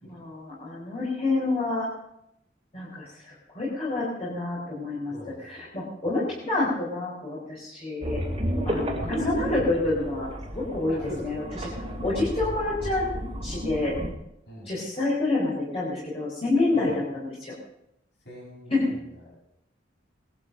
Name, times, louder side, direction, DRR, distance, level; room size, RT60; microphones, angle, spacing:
voice 1, 0.0-1.9 2.7-8.2 8.6-11.7 12.0-14.0 14.6-17.5 18.7-18.9, left 2 dB, 35° left, -6 dB, 4.6 m, -28 dB
voice 2, 5.1-5.7 10.9-11.4 11.8-12.2 14.5-14.7 16.7-16.9 18.2-18.9 19.3-19.4, left 1 dB, 60° left, -6 dB, 8.0 m, -43 dB
sound 1, 8.0-14.1, right 1 dB, 30° right, 2.7 m, -31 dB
20.0 x 12.0 x 5.2 m, 0.83 s
head